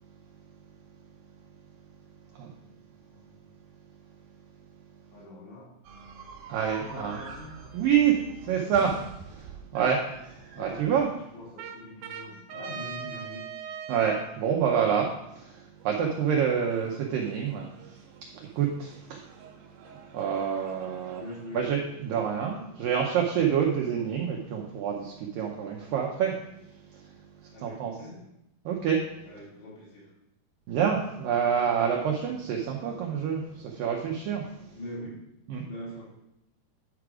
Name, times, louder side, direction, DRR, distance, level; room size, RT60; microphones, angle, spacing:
voice 1, 2.3-3.5 5.1-5.7 6.9-7.6 8.4-8.9 10.5-13.5 21.2-21.7 27.5-28.3 29.2-30.1 34.8-35.3 35.7-36.1, left 1 dB, 80° left, -6 dB, 4.9 m, -43 dB
sound 1, 5.8-11.0 11.6-14.3 15.8-21.6, right 6 dB, 70° right, 2.6 m, -44 dB
voice 2, 6.5-7.2 7.7-8.9 9.3-10.1 10.6-11.1 13.9-18.0 18.3-19.3 20.1-21.2 21.5-26.4 26.9-27.0 27.6-27.9 28.7-29.0 30.7-34.8 35.5-35.6, right 8 dB, 90° right, 0 dB, 1.9 m, -27 dB
10.0 x 4.8 x 4.9 m, 0.84 s
omnidirectional pair, 5.0 m